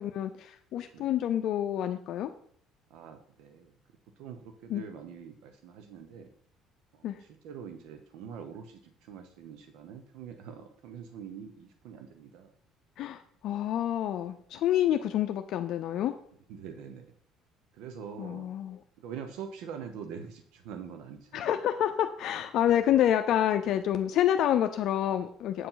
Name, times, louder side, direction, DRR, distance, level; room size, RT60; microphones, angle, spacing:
voice 1, 0.0-2.3 4.7-4.8 7.0-7.2 13.0-16.1 18.2-18.8 21.3-25.7, left 11 dB, 65° left, 7 dB, 0.6 m, -28 dB
voice 2, 0.9-1.2 2.9-3.8 4.2-6.3 6.9-12.5 16.5-17.2 17.7-18.5 19.0-21.5, right 7 dB, 80° right, 7 dB, 0.9 m, -44 dB
8.3 x 4.7 x 5.7 m, 0.63 s
cardioid pair, 110°, 0 cm